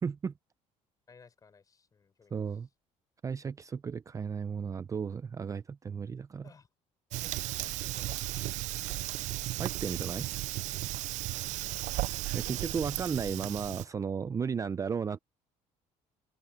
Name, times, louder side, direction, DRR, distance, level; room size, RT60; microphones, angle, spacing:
voice 1, 0.0-0.3 2.3-2.7 3.2-6.5 9.6-10.3 12.3-15.2, right 6 dB, 25° right, 0.6 m, -34 dB
voice 2, 1.1-2.6 6.4-6.7 7.1-8.2 11.3-12.1, left 5 dB, 25° left, 5.9 m, -58 dB
Fire, 7.1-13.8, right 18 dB, 70° right, 0.4 m, -35 dB
cardioid pair, 125°, 13 cm